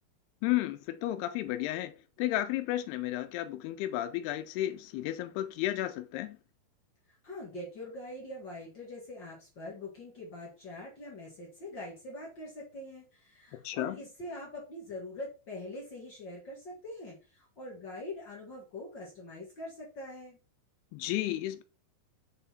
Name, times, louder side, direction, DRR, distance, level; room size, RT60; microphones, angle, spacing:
voice 1, 0.4-1.9 2.2-6.4 13.5-14.0 20.9-21.6, left 14 dB, 90° left, 2.7 m, -33 dB
voice 2, 7.1-20.4, left 1 dB, 55° left, 1.2 m, -43 dB
6.7 x 3.7 x 4.3 m
omnidirectional pair, 4.5 m